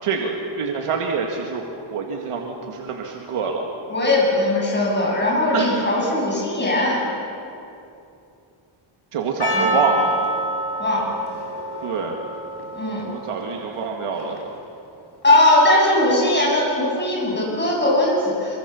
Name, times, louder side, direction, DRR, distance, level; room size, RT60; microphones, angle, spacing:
voice 1, 0.0-1.6 1.9-3.7 5.5-5.8 9.1-10.3 11.8-12.2 13.0-14.4, right 5 dB, 85° right, 1 dB, 2.3 m, -25 dB
voice 2, 3.9-7.0 9.5-9.7 10.8-11.2 12.7-13.1 15.2-18.6, left 1 dB, 20° left, -3 dB, 7.5 m, -19 dB
Percussion, 9.4-14.6, equal, 50° left, 3.8 m, -28 dB
26.0 x 24.5 x 7.2 m, 2.7 s
wide cardioid pair, 145°, 50 cm